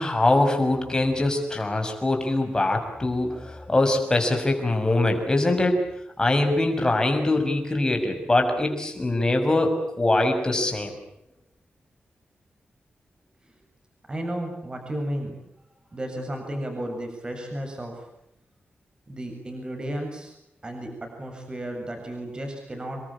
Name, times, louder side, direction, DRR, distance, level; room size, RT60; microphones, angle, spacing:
voice 1, 0.0-5.8 6.2-10.9, left 2 dB, 20° left, 4 dB, 6.4 m, -23 dB
voice 2, 14.1-15.3 15.9-17.9 19.1-20.3 20.6-23.0, right 1 dB, 25° right, 3 dB, 7.4 m, -33 dB
29.0 x 22.5 x 8.7 m, 0.82 s
wide cardioid pair, 135°, 4 cm